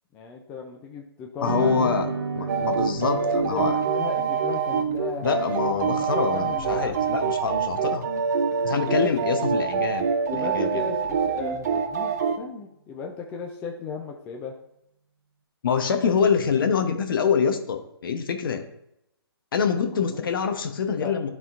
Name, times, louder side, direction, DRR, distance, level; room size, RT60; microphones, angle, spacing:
voice 1, 0.1-2.4 3.2-7.1 9.0-9.1 10.3-14.6 20.0-20.3 21.0-21.1, left 5 dB, 10° left, 1 dB, 0.3 m, -36 dB
voice 2, 1.4-2.1 2.3-3.8 5.2-8.1 8.6-10.1 10.3-10.8 15.6-18.6 19.5-21.3, left 6 dB, 55° left, 6 dB, 0.9 m, -25 dB
sound 1, 1.4-10.0, right 4 dB, 75° right, 0.9 m, -35 dB
sound 2, 2.5-12.4, right 6 dB, 40° right, 0.5 m, -25 dB
10.5 x 3.7 x 2.5 m, 0.80 s
hypercardioid pair, 150°, 13 cm